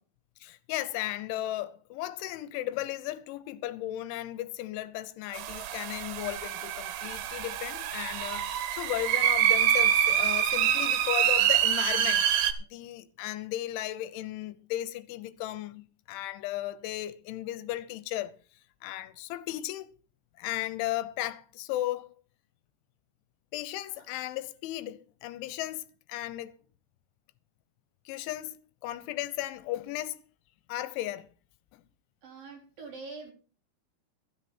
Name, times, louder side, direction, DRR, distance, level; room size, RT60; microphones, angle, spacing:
voice 1, 0.4-12.3 12.7-18.3 18.8-19.9 20.4-22.1 23.5-26.5 28.1-28.5 28.8-30.2 30.7-31.3, left 14 dB, 85° left, 3.1 m, -35 dB
sound 1, 5.3-12.5, right 10 dB, 90° right, 3.6 m, -26 dB
voice 2, 32.2-33.3, right 4 dB, 50° right, 5.5 m, -44 dB
13.5 x 13.0 x 4.4 m
omnidirectional pair, 5.4 m